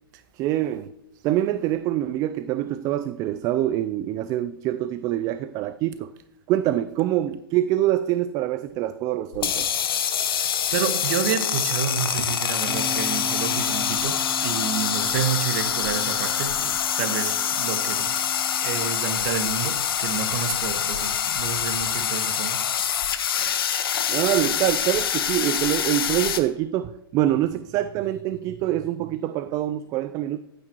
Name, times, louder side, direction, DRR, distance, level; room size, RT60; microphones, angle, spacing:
voice 1, 0.3-0.9 1.2-6.1 6.5-9.7 24.1-30.4, right 13 dB, 25° right, 0.4 m, -25 dB
sound 1, 9.3-26.4, left 8 dB, 70° left, 1.2 m, -25 dB
voice 2, 10.0-18.2 18.6-22.7, right 8 dB, 50° right, 1.4 m, -30 dB
Bass guitar, 12.7-18.9, right 3 dB, 5° right, 3.0 m, -39 dB
15.5 x 9.2 x 3.0 m
hypercardioid pair, 125°, 13 cm